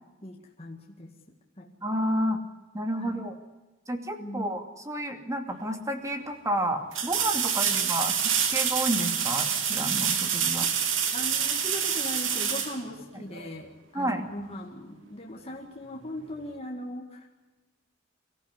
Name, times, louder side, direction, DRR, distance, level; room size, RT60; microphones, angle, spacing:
voice 1, 0.2-1.1 1.6-1.7 3.0-3.2 4.2-4.5 7.4-7.9 10.6-10.7 11.1-17.3, left 1 dB, 30° left, 0 dB, 2.0 m, -39 dB
voice 2, 1.8-2.4 2.7-3.3 3.9-10.7 13.9-14.3, right 1 dB, 15° right, 6 dB, 2.5 m, -30 dB
sound 1, 5.5-5.6 6.9-13.5 16.4-16.5, right 7 dB, 75° right, 2.7 m, -27 dB
24.5 x 15.0 x 9.7 m, 1.1 s
head